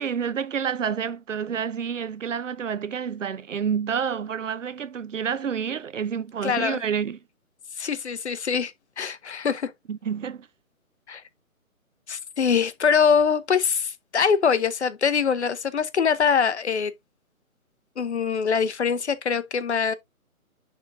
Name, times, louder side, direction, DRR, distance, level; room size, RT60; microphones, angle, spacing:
voice 1, 0.0-7.2 9.9-10.5, right 7 dB, 60° right, 0.7 m, -29 dB
voice 2, 6.4-6.8 7.8-9.7 11.1-11.2 12.1-16.9 18.0-19.9, left 6 dB, 50° left, 0.9 m, -23 dB
10.5 x 3.7 x 2.6 m
hypercardioid pair, 160°, 43 cm